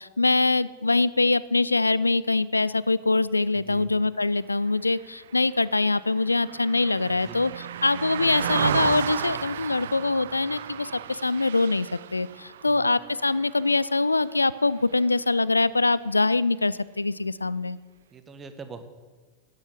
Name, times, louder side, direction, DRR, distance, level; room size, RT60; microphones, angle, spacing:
voice 1, 0.0-17.8, left 3 dB, 80° left, 19 dB, 0.4 m, -24 dB
voice 2, 3.5-3.9 7.1-7.4 12.7-12.9 18.1-18.8, right 4 dB, 20° right, 9 dB, 1.4 m, -43 dB
Car passing by, 5.0-14.6 14.9-15.2, right 10 dB, 60° right, 0.5 m, -34 dB
13.5 x 9.7 x 8.0 m, 1.4 s
figure-of-eight pair, 90°, 0 cm